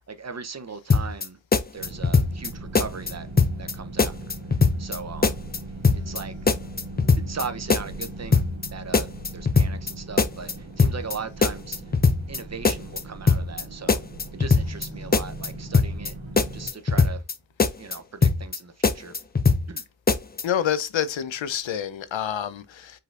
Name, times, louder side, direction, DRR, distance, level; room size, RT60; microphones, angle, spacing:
voice 1, 0.1-1.4 1.7-3.3 3.6-4.1 4.8-5.4 6.1-6.3 7.3-8.4 8.7-11.8 12.3-14.0 14.3-16.1 16.5-17.2 17.8-19.1 19.7-19.8, right 5 dB, 35° right, 0.7 m, -38 dB
sound 1, 0.9-1.3 1.5-2.5 2.7-3.1 3.4-3.7 4.0-5.0 5.2-5.6 5.8-6.2 6.5-7.4 7.7-8.1 8.3-8.7 8.9-9.9 10.2-10.5 10.8-11.1 11.4-12.4 12.6-13.0 13.3-13.6 13.9-14.9 15.1-15.5 15.7-16.1 16.4-17.3 17.6-18.0 18.2-18.6 18.8-19.8 20.1-20.4, left 4 dB, 20° left, 0.5 m, -20 dB
sound 2, 1.8-16.7, right 1 dB, 85° right, 1.4 m, -39 dB
voice 2, 20.4-23.0, left 9 dB, 75° left, 0.7 m, -27 dB
5.4 x 3.9 x 2.5 m
cardioid pair, 70°, 46 cm